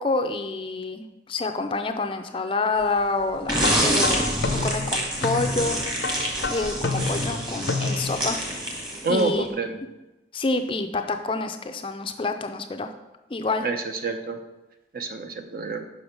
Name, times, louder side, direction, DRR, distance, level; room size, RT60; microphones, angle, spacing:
voice 1, 0.0-4.2 4.6-5.8 6.5-8.4 8.7-9.5 10.3-12.9 13.3-13.7, left 3 dB, 30° left, 7 dB, 0.4 m, -27 dB
sound 1, 3.5-9.4, right 1 dB, 25° right, 1.4 m, -27 dB
sound 2, 3.6-8.3, left 3 dB, 75° left, 0.6 m, -29 dB
voice 2, 9.0-9.8 13.6-14.4 14.9-15.8, right 3 dB, 50° right, 6 dB, 0.7 m, -27 dB
6.2 x 5.5 x 5.1 m, 1.0 s
head